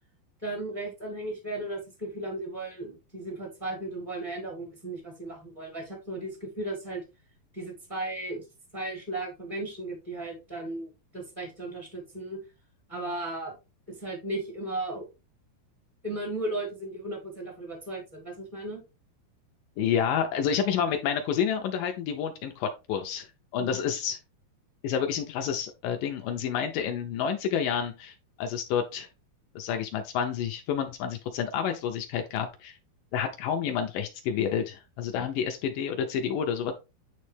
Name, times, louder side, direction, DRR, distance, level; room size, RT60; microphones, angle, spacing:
voice 1, 0.4-7.0 7.5-8.4 8.7-12.4 12.9-13.5 13.9-15.1 16.0-18.8 23.6-23.8, right 2 dB, 20° left, 0 dB, 0.4 m, -35 dB
voice 2, 19.8-23.3 23.5-24.2 24.8-29.1 29.6-32.8 33.1-36.7, left 8 dB, 80° left, 5 dB, 2.0 m, -29 dB
9.3 x 3.2 x 3.2 m, 0.27 s
omnidirectional pair, 4.5 m